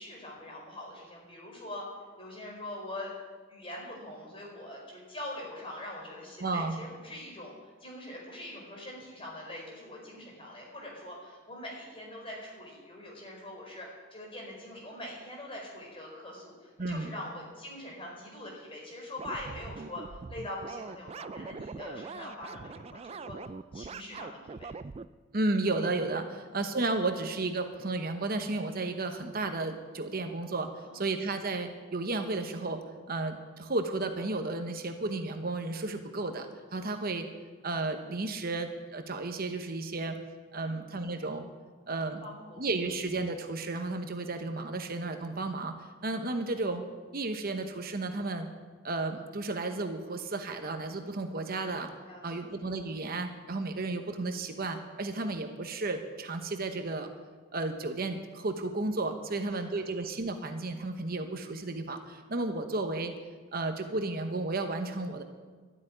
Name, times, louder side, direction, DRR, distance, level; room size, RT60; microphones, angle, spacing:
voice 1, 0.0-1.8 2.2-3.1 3.5-7.5 7.8-20.0 20.3-23.3 23.7-24.7 26.2-26.3 30.8-31.0 40.6-40.8 42.2-42.6 52.1-52.4 59.3-59.7, left 1 dB, 30° left, -2 dB, 4.7 m, -43 dB
voice 2, 6.4-6.8 16.8-17.1 25.3-32.8 33.1-37.3 37.6-40.2 40.5-41.4 41.9-42.2 42.6-45.8 46.0-46.8 47.1-48.5 48.8-51.9 52.2-57.1 57.5-63.1 63.5-65.2, right 2 dB, 50° right, 6 dB, 1.0 m, -33 dB
sound 1, 19.2-25.1, right 4 dB, 30° right, 0.3 m, -42 dB
12.5 x 8.5 x 10.0 m, 1.5 s
head